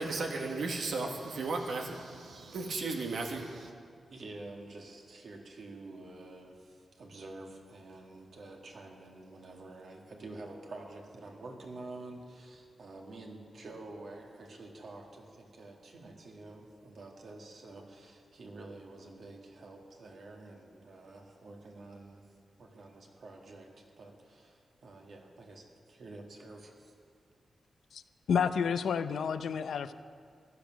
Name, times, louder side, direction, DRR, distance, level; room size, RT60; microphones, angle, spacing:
voice 1, 0.0-3.7, right 3 dB, 80° right, 2 dB, 1.3 m, -35 dB
voice 2, 4.1-22.2 22.6-26.9, right 2 dB, 65° right, 1 dB, 1.9 m, -48 dB
voice 3, 28.3-29.9, left 7 dB, 85° left, 12 dB, 0.5 m, -30 dB
15.0 x 11.5 x 6.2 m, 2.2 s
wide cardioid pair, 130°, 0 cm